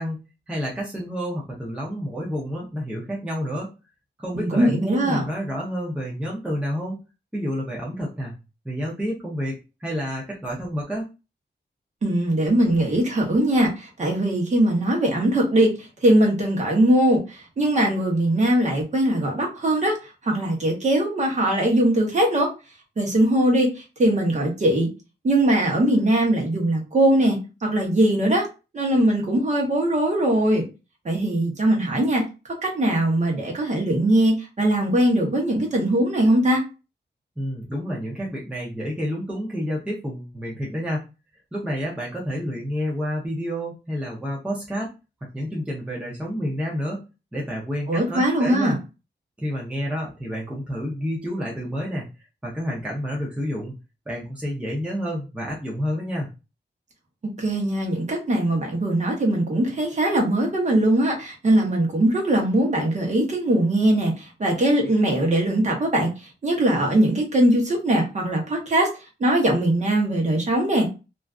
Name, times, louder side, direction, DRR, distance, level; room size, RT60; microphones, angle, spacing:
voice 1, 0.0-3.7 4.2-7.0 7.3-8.3 8.6-11.1 37.4-41.0 41.5-44.9 45.3-47.0 47.3-48.8 49.4-52.1 52.4-53.7 54.1-56.3, equal, 5° right, -4 dB, 0.5 m, -29 dB
voice 2, 4.3-5.2 12.0-22.5 23.0-24.9 25.2-28.5 28.7-30.6 31.0-32.2 32.6-36.6 47.9-48.8 57.4-68.9 69.2-70.9, right 1 dB, 40° right, 0 dB, 0.8 m, -21 dB
2.4 x 2.3 x 2.3 m, 0.30 s
wide cardioid pair, 150°, 19 cm